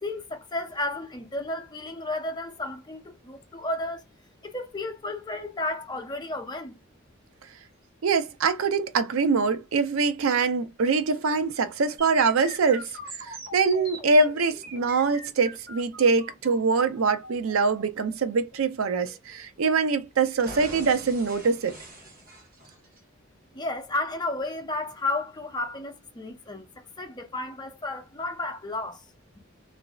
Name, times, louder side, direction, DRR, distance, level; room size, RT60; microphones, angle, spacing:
voice 1, 0.0-4.0 4.4-6.8 23.5-29.0, left 2 dB, 20° left, 0.7 m, -33 dB
voice 2, 8.0-12.9 13.2-21.8, right 4 dB, 75° right, 0.5 m, -24 dB
sound 1, 12.0-19.9 20.4-23.0, right 1 dB, 45° right, 1.1 m, -43 dB
3.1 x 2.5 x 2.3 m
head